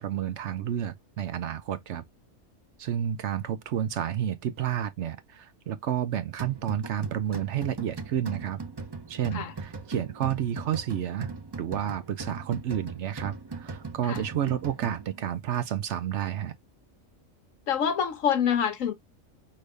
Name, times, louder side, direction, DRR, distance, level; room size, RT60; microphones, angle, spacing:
voice 1, 0.0-2.0 2.8-8.6 9.1-16.5, right 10 dB, 65° right, 0.8 m, -30 dB
sound 1, 6.4-15.3, right 4 dB, 25° right, 0.6 m, -39 dB
voice 2, 17.7-18.9, left 8 dB, 70° left, 1.3 m, -26 dB
5.5 x 2.6 x 3.3 m
omnidirectional pair, 1.4 m